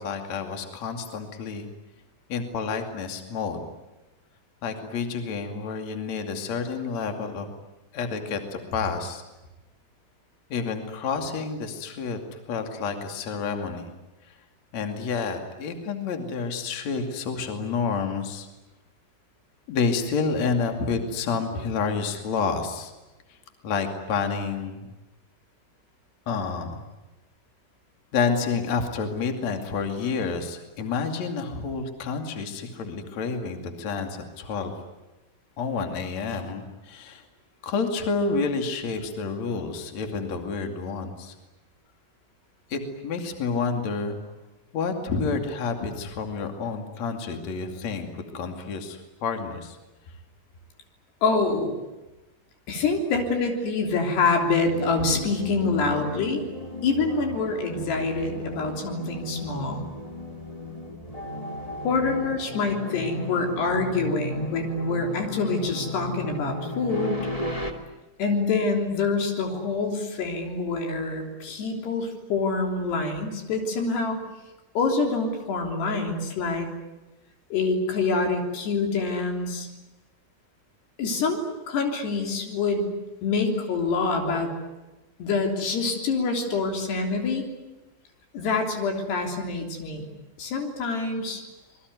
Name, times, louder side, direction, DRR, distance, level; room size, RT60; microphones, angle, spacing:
voice 1, 0.0-1.7 2.3-3.7 4.6-7.5 7.9-9.2 10.5-13.9 14.3-14.4 14.7-18.5 19.7-22.9 23.6-24.9 26.3-26.8 28.1-34.7 35.6-37.2 37.6-41.3 42.7-44.2 44.7-49.8, left 5 dB, 45° left, 5 dB, 3.4 m, -29 dB
voice 2, 51.2-51.8 52.7-56.4 56.8-59.9 61.8-67.3 68.2-74.2 74.8-76.7 77.5-79.7 81.0-82.9 83.2-84.5 85.2-87.5 88.3-90.1 90.4-91.4, left 3 dB, 80° left, 3 dB, 5.5 m, -26 dB
sound 1, 54.7-67.7, left 1 dB, 15° left, 1.6 m, -36 dB
26.5 x 22.0 x 9.5 m, 1.0 s
omnidirectional pair, 4.7 m